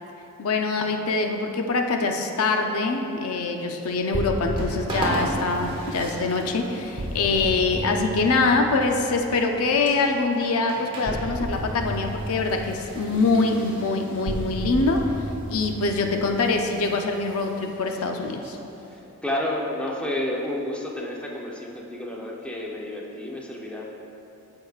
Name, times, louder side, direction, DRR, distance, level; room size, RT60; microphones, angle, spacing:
voice 1, 0.4-15.0 15.5-18.6, left 3 dB, 70° left, 3 dB, 0.5 m, -24 dB
sound 1, 3.8-19.0, right 1 dB, 25° right, 1.2 m, -38 dB
sound 2, 4.1-9.9 11.0-17.3, right 1 dB, 45° right, 0.5 m, -34 dB
voice 2, 18.9-23.8, left 1 dB, 5° left, -3 dB, 0.7 m, -30 dB
13.0 x 4.7 x 2.4 m, 2.9 s
head